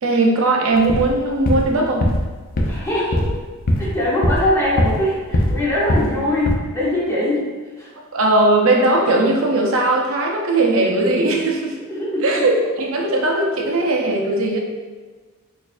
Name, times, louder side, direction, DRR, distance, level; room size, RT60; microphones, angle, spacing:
voice 1, 0.0-2.1 8.1-11.8 12.2-14.6, right 2 dB, 70° right, 0 dB, 0.5 m, -18 dB
sound 1, 0.8-1.1 1.4-1.7 2.0-2.3 2.6-2.8 3.1-3.4 3.7-3.9 4.2-5.1 5.3-5.6 5.9-6.2 6.4-6.6, left 1 dB, 40° left, 0.4 m, -20 dB
voice 2, 2.7-3.3 3.8-7.5 7.8-7.9 11.9-12.4, left 1 dB, 15° left, -9 dB, 0.9 m, -22 dB
4.1 x 2.6 x 2.5 m, 1.4 s
head